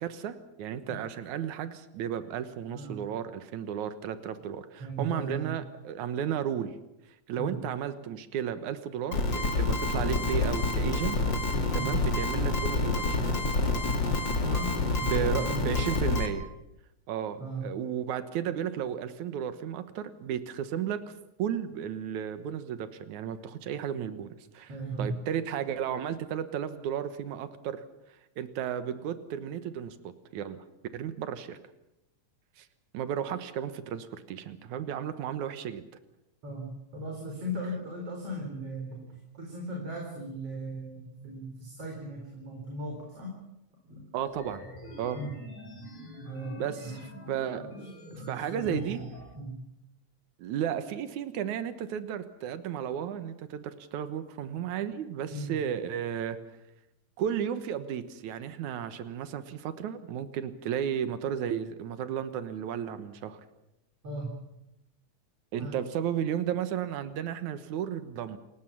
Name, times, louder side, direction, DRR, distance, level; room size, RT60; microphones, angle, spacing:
voice 1, 0.0-6.7 7.3-11.2 11.5-13.3 15.0-16.5 17.1-21.0 21.4-27.8 28.4-30.6 30.9-31.6 32.6-32.7 32.9-35.8 44.1-44.6 45.0-45.2 46.6-47.7 48.1-49.0 50.4-56.4 57.2-63.4 65.5-68.4, right 9 dB, 85° right, 11 dB, 2.7 m, -34 dB
voice 2, 2.7-3.0 4.8-5.6 7.4-7.7 11.7-12.0 14.4-15.9 17.4-17.7 24.7-25.2 36.4-43.3 43.9-44.0 45.1-45.4 46.3-47.2 47.6-49.7 55.3-55.6 64.0-64.3 65.6-65.8, right 1 dB, 50° right, 0 dB, 5.4 m, -38 dB
sound 1, 9.1-16.3, left 3 dB, 40° left, 3.0 m, -27 dB
sound 2, 44.3-49.3, left 1 dB, 60° left, 7.1 m, -46 dB
28.5 x 17.0 x 7.3 m, 0.86 s
omnidirectional pair, 3.4 m